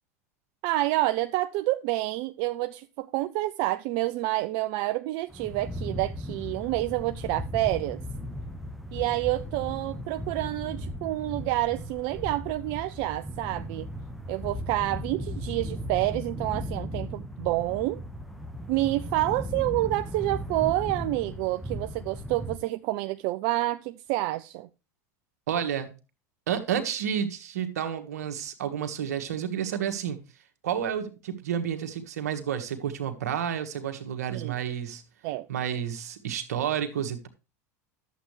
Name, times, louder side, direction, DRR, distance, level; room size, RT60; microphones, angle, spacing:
voice 1, 0.6-8.0 8.9-13.9 14.3-18.0 18.7-24.7 34.3-34.5 35.2-35.5, right 17 dB, 60° right, 0.5 m, -28 dB
sound 1, 5.3-22.6, equal, ahead, 1.3 m, -37 dB
voice 2, 25.5-25.9 26.5-30.2 30.6-35.0 35.5-37.3, right 9 dB, 85° right, 1.5 m, -30 dB
11.0 x 7.6 x 3.2 m
hypercardioid pair, 95°, 8 cm